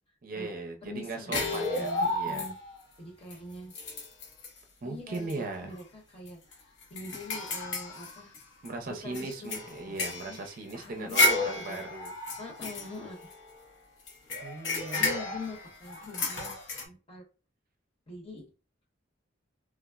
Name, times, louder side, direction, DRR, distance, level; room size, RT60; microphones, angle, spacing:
voice 1, 0.2-2.5 4.8-5.7 8.6-12.1 14.4-15.1, right 3 dB, 50° right, 3 dB, 0.5 m, -38 dB
voice 2, 0.8-2.5 3.0-3.7 4.8-8.4 8.8-10.4 10.7-11.8 12.4-13.2 14.9-17.2 18.1-18.5, left 2 dB, 30° left, -2 dB, 0.9 m, -44 dB
sound 1, 1.3-2.8 3.3-3.4 3.7-4.6 5.1-5.3 5.7-5.8 6.3-8.7 9.1-13.6 14.1-16.8, left 2 dB, 80° left, 0.8 m, -32 dB
3.4 x 2.0 x 2.3 m, 0.34 s
head